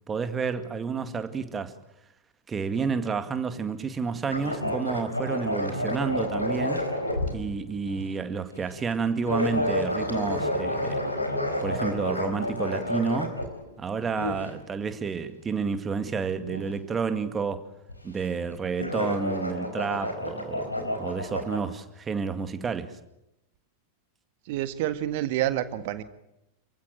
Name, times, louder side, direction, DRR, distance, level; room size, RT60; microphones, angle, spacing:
voice 1, 0.1-1.8 2.5-6.9 7.3-11.0 11.6-13.3 13.8-17.7 18.0-23.0, right 5 dB, 20° right, 2.1 m, -30 dB
sound 1, 4.3-8.0 8.7-8.8 9.2-13.7 14.1-14.6 16.5-16.7 17.9-18.2 18.4-21.6, left 1 dB, 85° left, 4.4 m, -30 dB
voice 2, 24.5-26.0, right 13 dB, 50° right, 1.7 m, -28 dB
28.0 x 15.5 x 9.2 m
figure-of-eight pair, 90°, 0 cm